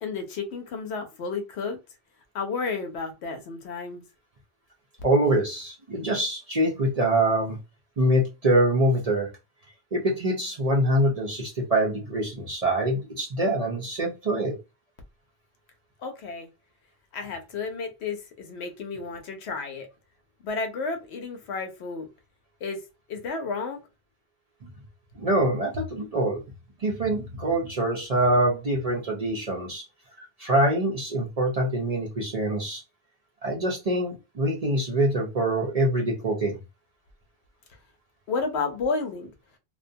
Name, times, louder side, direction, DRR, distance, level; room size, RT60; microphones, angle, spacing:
voice 1, 0.0-1.8 2.3-4.0 16.0-16.5 17.1-19.9 20.4-22.1 22.6-22.8 23.1-23.8 38.3-39.3, left 4 dB, 75° left, 0.9 m, -32 dB
voice 2, 5.0-7.6 8.0-9.3 9.9-14.6 25.2-26.4 26.8-29.8 30.2-32.8 33.4-36.6, right 1 dB, 45° right, 0.6 m, -24 dB
2.5 x 2.2 x 2.6 m
omnidirectional pair, 1.1 m